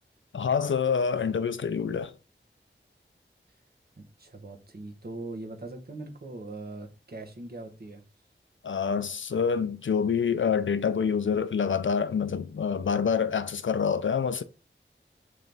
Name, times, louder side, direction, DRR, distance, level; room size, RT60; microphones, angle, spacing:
voice 1, 0.3-2.1 8.6-14.4, left 6 dB, 75° left, 0.4 m, -27 dB
voice 2, 4.0-8.0, right 2 dB, 50° right, 0.9 m, -41 dB
3.3 x 3.0 x 3.9 m
wide cardioid pair, 50°, 20 cm